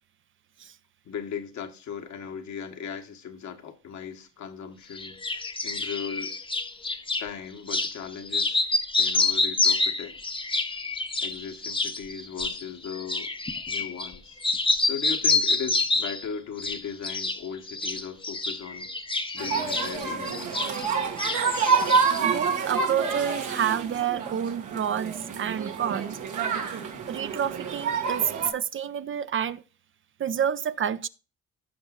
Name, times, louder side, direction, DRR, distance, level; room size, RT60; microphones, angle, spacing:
voice 1, 1.0-6.3 7.2-8.6 9.0-10.2 11.2-13.3 13.7-14.4 14.8-18.9 19.3-20.8, left 7 dB, 70° left, 1.3 m, -38 dB
sound 1, 5.0-7.3 7.7-7.9 8.3-14.1 14.4-16.2 16.6-17.4 17.7-20.9 21.2-22.2, left 3 dB, 15° left, 0.8 m, -27 dB
sound 2, 19.4-28.5, right 5 dB, 85° right, 1.8 m, -28 dB
voice 2, 22.2-26.2 27.1-29.6 30.2-31.1, right 8 dB, 40° right, 0.5 m, -28 dB
16.0 x 6.2 x 2.4 m
cardioid pair, 90°, 30 cm